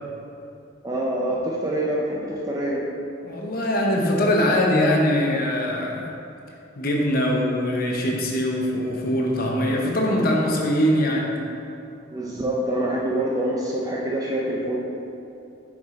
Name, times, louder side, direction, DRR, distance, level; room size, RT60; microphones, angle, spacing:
voice 1, 0.8-2.8 12.1-14.8, right 1 dB, 20° right, -3 dB, 0.5 m, -25 dB
voice 2, 3.2-6.1 6.8-11.4, left 1 dB, 50° left, -1 dB, 0.9 m, -22 dB
6.8 x 4.9 x 3.7 m, 2.7 s
head